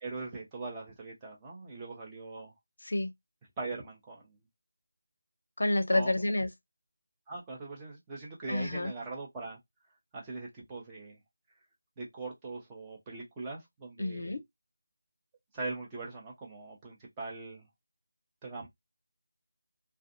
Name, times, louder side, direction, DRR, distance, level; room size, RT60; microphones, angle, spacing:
voice 1, 0.0-2.5 3.6-4.4 5.9-6.1 7.3-9.6 10.1-11.2 12.0-14.3 15.5-17.7 18.4-18.7, right 3 dB, 15° right, 0.7 m, -41 dB
voice 2, 5.6-6.5 8.5-8.9 14.0-14.4, left 1 dB, 60° left, 0.5 m, -29 dB
2.4 x 2.2 x 2.5 m
figure-of-eight pair, 160°, 0 cm